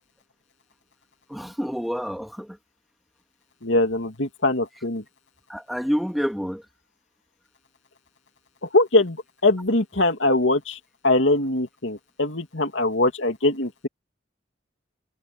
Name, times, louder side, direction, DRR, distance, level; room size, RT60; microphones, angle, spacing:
voice 1, 1.3-2.6 5.5-6.6, equal, ahead, 2.9 m, -28 dB
voice 2, 3.6-5.0 8.7-9.2 9.4-13.9, left 2 dB, 70° left, 2.8 m, -22 dB
head